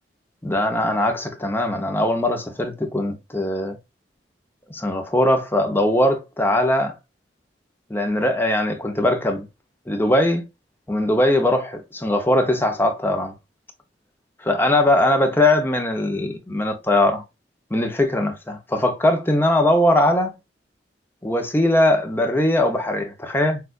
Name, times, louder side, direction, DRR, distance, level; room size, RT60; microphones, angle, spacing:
voice 1, 0.4-3.8 4.7-6.9 7.9-9.5 9.9-10.4 10.9-13.3 14.4-17.2 17.7-20.3 21.2-23.6, left 1 dB, 10° left, 0.9 m, -20 dB
6.7 x 2.6 x 2.5 m
head